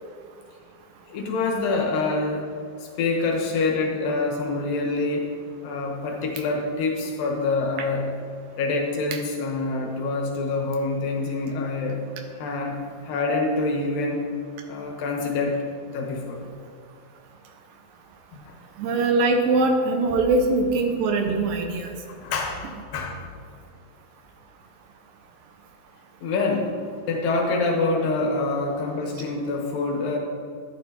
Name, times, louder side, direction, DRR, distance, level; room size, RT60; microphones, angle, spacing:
voice 1, 1.1-2.5 2.8-5.3 5.6-8.1 8.6-12.0 12.4-12.8 13.0-14.3 14.7-15.6 15.9-16.4 18.5-18.6 22.1-22.6 22.9-23.3 26.2-26.7 27.1-30.2, left 3 dB, 70° left, 0 dB, 2.7 m, -26 dB
voice 2, 18.8-21.9, right 3 dB, 75° right, 4 dB, 2.3 m, -22 dB
12.5 x 8.8 x 2.8 m, 2.2 s
omnidirectional pair, 4.3 m